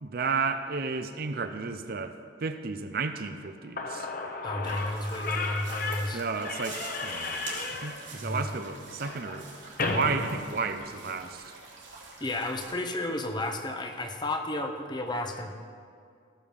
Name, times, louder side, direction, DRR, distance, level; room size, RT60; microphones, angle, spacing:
voice 1, 0.0-4.1 6.1-7.4 7.8-9.5 9.8-11.6, right 4 dB, 50° right, 9 dB, 0.6 m, -32 dB
Slam / Squeak, 3.5-3.6 3.8-11.2, left 3 dB, 50° left, 1.0 m, -34 dB
voice 2, 4.4-6.2 12.2-15.5, left 1 dB, 25° left, 5 dB, 0.8 m, -32 dB
sound 1, 4.6-12.7, right 4 dB, 75° right, 3.0 m, -46 dB
17.0 x 7.0 x 5.4 m, 2.2 s
head